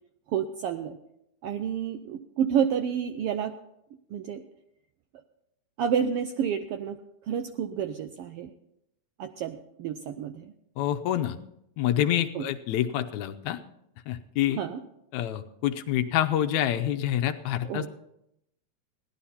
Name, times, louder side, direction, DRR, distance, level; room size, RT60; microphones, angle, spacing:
voice 1, 0.3-1.0 1.4-3.5 4.1-4.4 5.8-7.0 7.3-8.5 9.2-10.5 12.3-12.5 14.6-14.8 17.7-17.9, right 8 dB, 85° right, 7 dB, 1.3 m, -29 dB
voice 2, 10.8-11.4 11.8-13.6 14.1-14.6 15.1-17.9, left 11 dB, 80° left, 8 dB, 2.0 m, -27 dB
17.0 x 11.5 x 4.3 m, 0.79 s
omnidirectional pair, 3.3 m